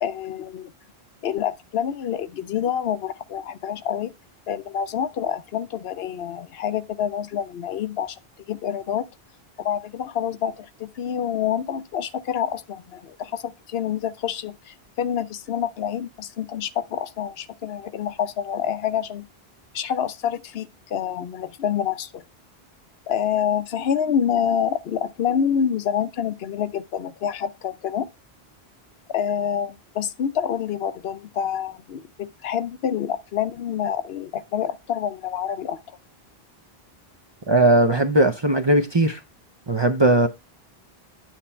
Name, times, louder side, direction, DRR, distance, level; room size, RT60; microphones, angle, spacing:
voice 1, 0.0-0.7 1.2-4.1 4.5-8.2 8.5-9.0 9.6-19.3 19.7-22.2 23.1-28.1 29.1-36.0, left 8 dB, 75° left, 0.8 m, -27 dB
voice 2, 37.5-39.2 39.7-40.3, right 1 dB, 30° right, 0.6 m, -18 dB
9.2 x 4.4 x 4.3 m
omnidirectional pair, 1.0 m